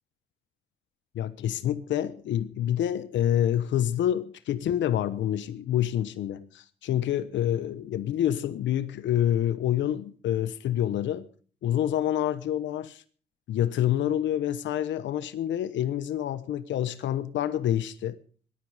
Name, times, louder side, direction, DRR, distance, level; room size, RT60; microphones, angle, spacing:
voice 1, 1.1-11.3 11.6-13.0 13.5-18.2, left 11 dB, 85° left, 1.1 m, -27 dB
18.5 x 12.5 x 5.0 m
cardioid pair, 130°, 19 cm